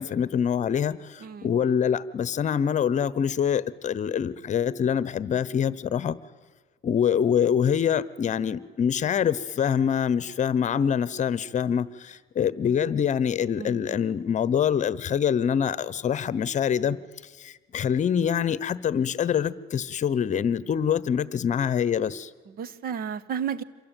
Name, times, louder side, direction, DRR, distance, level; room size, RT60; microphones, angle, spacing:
voice 1, 0.0-6.2 6.8-17.0 17.4-22.3, left 8 dB, 45° left, 18 dB, 1.1 m, -25 dB
voice 2, 1.2-1.5 13.6-14.0 22.5-23.6, right 7 dB, 60° right, 17 dB, 1.4 m, -33 dB
27.0 x 23.0 x 9.2 m, 1.3 s
cardioid pair, 110°, 17 cm